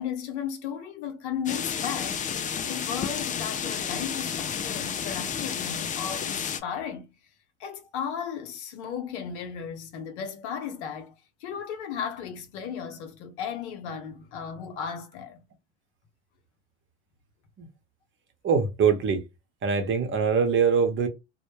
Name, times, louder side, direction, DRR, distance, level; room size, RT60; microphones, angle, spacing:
voice 1, 0.0-7.1 7.6-11.1 11.4-15.4, left 8 dB, 80° left, 0.7 m, -35 dB
sound 1, 1.5-6.6, left 7 dB, 25° left, 0.3 m, -31 dB
voice 2, 18.4-19.2 19.6-21.1, right 6 dB, 35° right, 0.8 m, -23 dB
2.1 x 2.1 x 3.1 m
hypercardioid pair, 80°, 34 cm